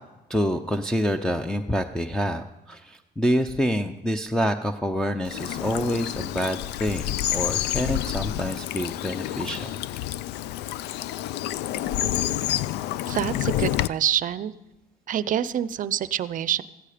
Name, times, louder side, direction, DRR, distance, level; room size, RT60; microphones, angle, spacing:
voice 1, 0.3-9.7, equal, 5° left, 2 dB, 0.6 m, -27 dB
Bird vocalization bird call bird song / Stream, 5.3-13.9, left 13 dB, 80° left, 0.5 m, -28 dB
voice 2, 13.1-14.5 15.1-16.6, right 10 dB, 50° right, 16 dB, 0.6 m, -26 dB
15.5 x 15.0 x 5.0 m, 0.98 s
cardioid pair, 110°, 17 cm